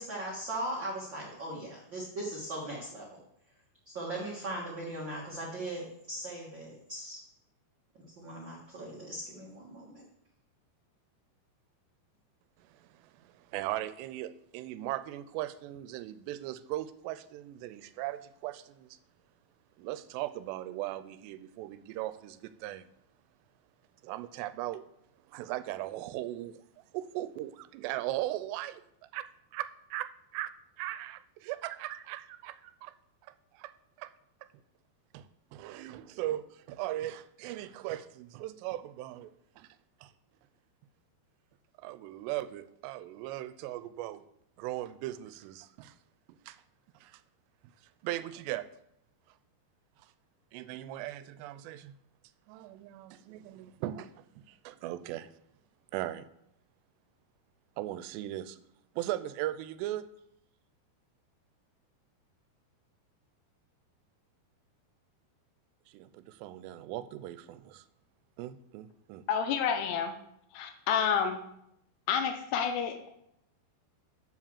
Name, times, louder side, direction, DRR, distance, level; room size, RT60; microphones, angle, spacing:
voice 1, 0.0-3.0 3.9-7.2 8.2-10.0, right 1 dB, 70° right, -4 dB, 1.1 m, -39 dB
voice 2, 12.6-19.0 19.8-22.9 24.0-24.8 25.3-26.6 26.9-28.8 29.1-32.9 33.5-33.7 34.0-34.1 35.1-39.7 40.0-40.1 41.8-44.2 44.6-46.0 46.3-46.6 47.0-47.2 48.0-48.7 50.0-50.1 50.5-51.9 52.5-55.3 55.9-56.3 57.8-58.6 59.0-60.1 65.9-67.9 68.4-69.2, right 14 dB, 90° right, 13 dB, 2.7 m, -38 dB
voice 3, 69.3-70.1 70.5-71.4 72.1-73.1, left 7 dB, 85° left, 6 dB, 2.9 m, -29 dB
7.8 x 4.9 x 7.2 m, 0.76 s
omnidirectional pair, 4.8 m